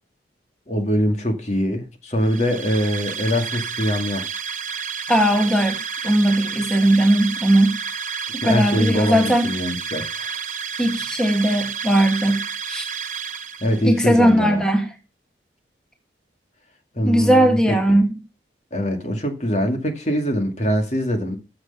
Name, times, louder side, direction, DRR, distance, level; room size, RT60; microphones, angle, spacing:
voice 1, 0.7-4.3 8.4-10.3 13.6-14.6 16.9-18.0 18.7-21.4, equal, 40° left, 2.2 m, -23 dB
sound 1, 2.2-14.0, right 6 dB, 40° right, 0.8 m, -30 dB
voice 2, 5.1-7.8 8.3-9.5 10.8-12.9 13.8-14.9 17.0-18.1, right 1 dB, 5° left, 1.7 m, -18 dB
14.5 x 6.4 x 5.5 m
head